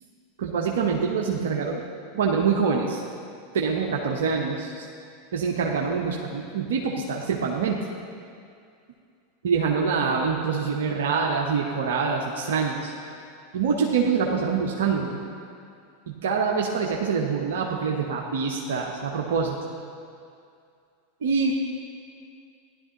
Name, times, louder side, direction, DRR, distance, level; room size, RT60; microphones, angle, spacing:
voice 1, 0.4-1.9 2.1-3.0 3.5-4.9 5.3-7.8 9.4-12.9 13.5-15.2 16.2-19.6 21.2-21.5, right 5 dB, 65° right, 0 dB, 0.9 m, -25 dB
16.0 x 11.0 x 2.9 m, 2.4 s
figure-of-eight pair, 90°, 0 cm